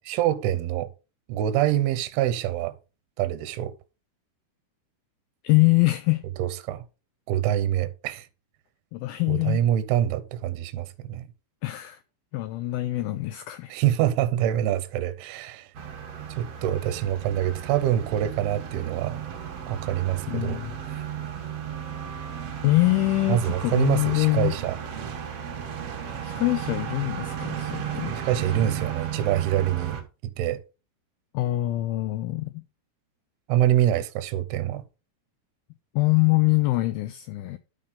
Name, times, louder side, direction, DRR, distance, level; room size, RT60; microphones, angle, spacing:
voice 1, 0.1-0.9 1.3-2.8 3.2-3.7 6.4-6.8 7.3-8.3 9.3-11.3 13.7-15.7 16.3-19.2 19.7-20.6 20.9-21.1 23.3-24.8 26.1-26.2 28.2-30.0 30.4-30.6 33.5-34.8, right 12 dB, 80° right, 2.6 m, -25 dB
voice 2, 5.4-6.3 8.9-9.7 11.6-12.0 12.3-13.7 20.3-20.8 22.6-24.5 26.2-28.1 28.5-28.6 31.3-32.6 36.0-37.6, left 20 dB, 85° left, 2.1 m, -24 dB
sound 1, 15.7-30.0, right 8 dB, 60° right, 1.8 m, -34 dB
11.5 x 5.7 x 3.6 m
omnidirectional pair, 4.8 m